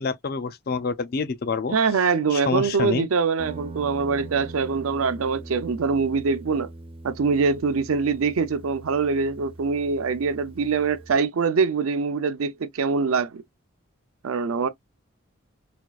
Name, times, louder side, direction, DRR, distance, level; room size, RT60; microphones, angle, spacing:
voice 1, 0.0-1.8 2.3-3.1, left 4 dB, 45° left, 0.4 m, -27 dB
voice 2, 1.7-6.7 7.0-13.4 14.2-14.7, right 5 dB, 80° right, 0.5 m, -24 dB
Guitar, 3.4-11.2, right 2 dB, 25° right, 0.4 m, -42 dB
4.3 x 2.3 x 2.3 m
head